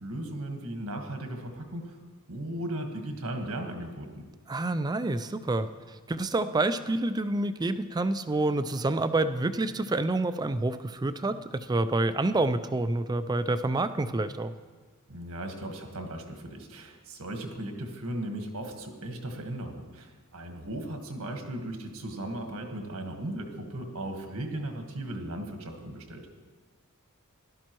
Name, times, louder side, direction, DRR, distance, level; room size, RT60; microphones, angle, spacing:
voice 1, 0.0-2.0 2.3-4.3 15.1-26.3, right 1 dB, 80° right, 4 dB, 1.5 m, -37 dB
voice 2, 4.5-5.7 6.1-14.5, right 2 dB, 20° right, 11 dB, 0.4 m, -28 dB
16.5 x 11.5 x 3.1 m, 1.4 s
head